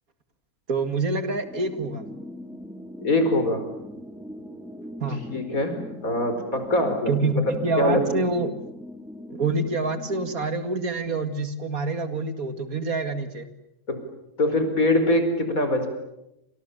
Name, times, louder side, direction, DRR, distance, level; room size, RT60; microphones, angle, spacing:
voice 1, 0.7-2.0 5.0-5.2 7.1-8.5 9.3-13.5, right 3 dB, 85° right, 9 dB, 2.8 m, -26 dB
sound 1, 1.4-10.6, equal, ahead, 3.3 m, -40 dB
voice 2, 3.0-3.6 5.3-7.1 7.8-8.0 13.9-14.0 14.4-15.9, left 1 dB, 75° left, 7 dB, 5.2 m, -23 dB
29.5 x 27.5 x 7.0 m, 0.88 s
omnidirectional pair, 1.5 m